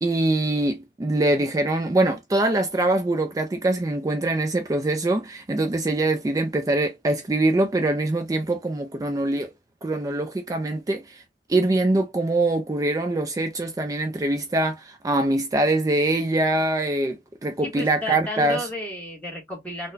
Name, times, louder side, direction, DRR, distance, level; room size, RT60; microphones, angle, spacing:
voice 1, 0.0-9.5 9.8-11.2 11.5-18.7, right 2 dB, 20° right, 0.3 m, -23 dB
voice 2, 17.6-19.9, left 1 dB, 10° left, 1.0 m, -32 dB
3.8 x 2.1 x 2.5 m
head